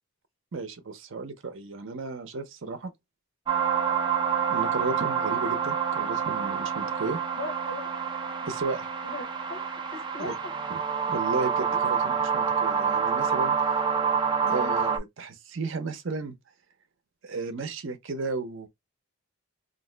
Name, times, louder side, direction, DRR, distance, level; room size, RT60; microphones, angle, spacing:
voice 1, 0.5-2.9 4.5-7.2 8.5-8.9 10.2-10.3 10.7-10.8 11.1-13.5 14.5-16.4 17.2-18.7, right 3 dB, 60° right, 0.6 m, -34 dB
sound 1, 3.5-15.0, right 7 dB, 20° right, 0.4 m, -27 dB
voice 2, 7.4-7.9 9.0-9.6 9.9-10.5 11.7-11.8 14.4-14.7, left 2 dB, 60° left, 0.8 m, -38 dB
2.5 x 2.1 x 3.7 m
head